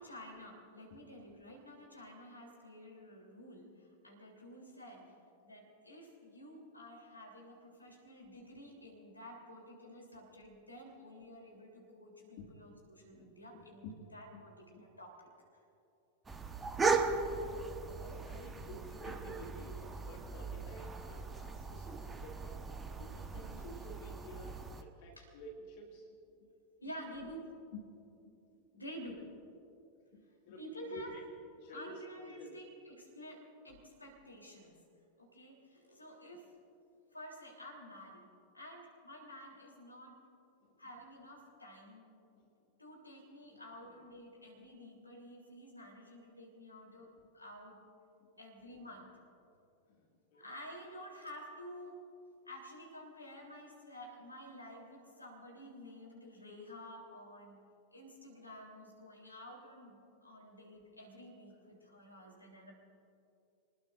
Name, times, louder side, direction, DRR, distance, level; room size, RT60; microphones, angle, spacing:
voice 1, 0.0-5.1 5.4-15.3 23.3-23.6 25.2-25.3 26.8-27.5 28.7-29.2 30.6-31.1 31.7-34.8 35.2-36.5 37.1-40.2 40.8-42.0 42.8-47.8 48.4-49.1 50.3-52.0 52.5-57.6 57.9-62.7, equal, 85° left, -1 dB, 3.5 m, -51 dB
voice 2, 12.2-12.8 13.1-14.0 14.3-14.5 14.7-14.8 17.9-26.1 26.4-26.5 27.7-28.0 30.1-31.2 31.6-32.7 40.6-40.8 42.3-42.5 43.5-44.5 49.9-50.5, left 1 dB, 50° left, 0 dB, 2.2 m, -52 dB
sound 1, 16.3-24.8, right 4 dB, 15° right, 1.2 m, -38 dB
28.0 x 20.0 x 2.6 m, 2.7 s
figure-of-eight pair, 90°, 0 cm